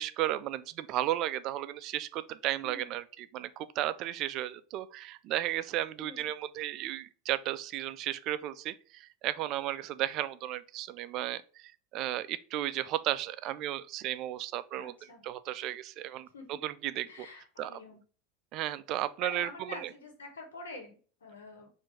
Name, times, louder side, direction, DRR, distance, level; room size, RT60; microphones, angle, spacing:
voice 1, 0.0-14.9 15.2-17.1 17.6-17.7 18.5-19.9, right 14 dB, 45° right, 0.3 m, -34 dB
voice 2, 6.0-6.3 14.8-15.2 16.3-16.6 17.1-18.0 19.2-21.7, left 3 dB, 75° left, 1.3 m, -46 dB
4.4 x 2.6 x 4.5 m
figure-of-eight pair, 80°, 0 cm